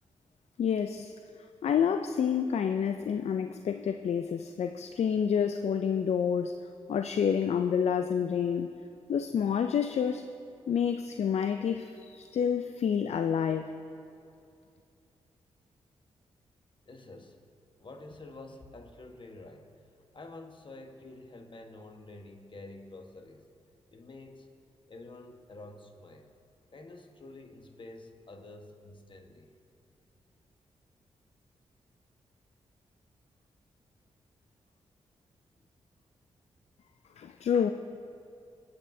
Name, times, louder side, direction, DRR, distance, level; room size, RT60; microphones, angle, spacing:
voice 1, 0.6-1.1 1.6-6.6 6.9-8.7 9.1-10.3 10.7-13.7 37.2-37.7, left 7 dB, 60° left, 8 dB, 0.4 m, -28 dB
voice 2, 16.9-17.4 17.8-19.8 20.1-23.5 23.9-24.5 24.9-26.3 26.7-29.5, left 2 dB, 40° left, 4 dB, 1.3 m, -48 dB
25.0 x 8.4 x 2.7 m, 2.6 s
supercardioid pair, 45°, 12 cm